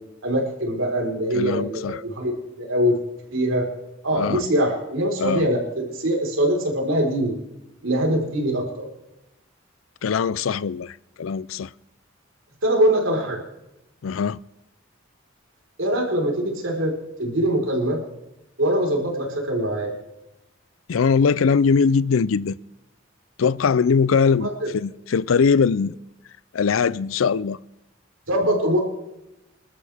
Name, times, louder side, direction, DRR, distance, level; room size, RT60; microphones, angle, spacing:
voice 1, 0.2-3.0 3.3-3.7 4.0-7.4 7.8-8.9 12.6-13.4 15.8-16.9 17.2-18.0 18.6-19.9 24.4-24.7 28.3-28.8, right 1 dB, 90° right, 4.3 m, -23 dB
voice 2, 1.3-2.0 4.2-4.4 5.2-5.5 10.0-11.7 14.0-14.4 20.9-22.6 23.4-25.9 26.5-27.6, left 5 dB, 85° left, 0.4 m, -21 dB
28.0 x 12.5 x 3.5 m
head